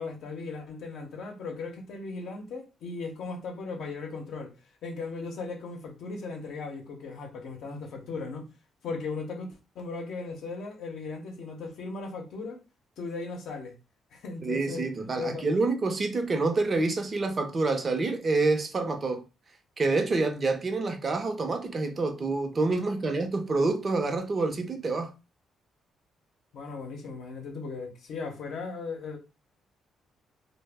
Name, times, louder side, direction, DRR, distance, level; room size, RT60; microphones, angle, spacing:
voice 1, 0.0-4.5 4.8-8.5 8.8-12.6 13.0-13.8 14.1-14.9 15.2-15.4 26.5-29.2, left 4 dB, 75° left, 0.6 m, -37 dB
voice 2, 14.4-19.2 19.8-25.1, right 3 dB, 35° right, 0.6 m, -27 dB
2.0 x 2.0 x 3.3 m
cardioid pair, 90°, 0 cm